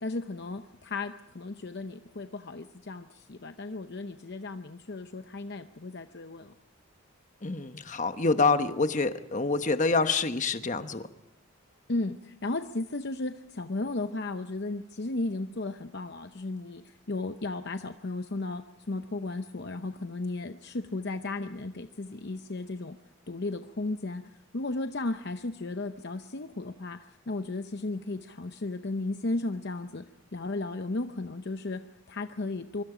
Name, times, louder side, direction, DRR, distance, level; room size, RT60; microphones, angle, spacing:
voice 1, 0.0-6.5 11.9-23.0 23.3-30.1 30.3-32.8, left 2 dB, 50° left, 8 dB, 0.7 m, -35 dB
voice 2, 7.4-11.1, left 3 dB, 35° left, 9 dB, 1.1 m, -26 dB
24.5 x 24.0 x 5.0 m, 0.89 s
head